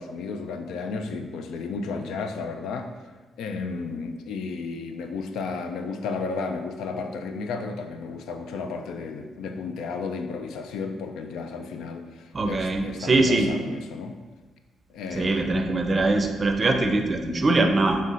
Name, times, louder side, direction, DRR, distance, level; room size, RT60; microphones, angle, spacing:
voice 1, 0.0-2.9 3.4-14.1 14.9-15.6, left 4 dB, 80° left, 6 dB, 0.3 m, -33 dB
voice 2, 12.3-13.5 15.1-18.0, right 2 dB, 30° right, 4 dB, 0.5 m, -22 dB
5.4 x 3.2 x 2.5 m, 1.3 s
cardioid pair, 90°, 0 cm